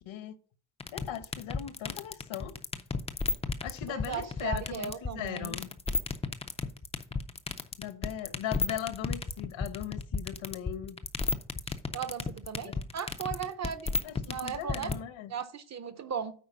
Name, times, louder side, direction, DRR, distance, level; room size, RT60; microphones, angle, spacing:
voice 1, 0.1-0.4 0.9-2.6 3.6-5.7 7.8-11.0 12.6-12.8 14.0-15.3, left 11 dB, 70° left, 1.0 m, -38 dB
sound 1, 0.8-14.9, left 4 dB, 15° left, 0.3 m, -32 dB
voice 2, 3.9-5.6 11.9-13.9 14.2-14.9 15.3-16.3, right 7 dB, 35° right, 0.5 m, -37 dB
8.7 x 4.7 x 5.5 m
cardioid pair, 155°, 49 cm